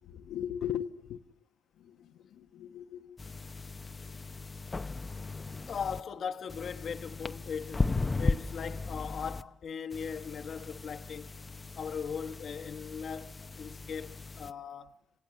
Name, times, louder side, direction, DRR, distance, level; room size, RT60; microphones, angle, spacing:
voice 1, 0.0-1.2 1.8-3.2, left 10 dB, 80° left, 1.0 m, -38 dB
sound 1, 3.2-6.0 6.5-9.4 9.9-14.5, left 3 dB, 25° left, 0.8 m, -37 dB
voice 2, 5.7-11.4 11.7-15.0, left 6 dB, 55° left, 1.3 m, -39 dB
28.0 x 16.5 x 6.6 m
cardioid pair, 90°, 0 cm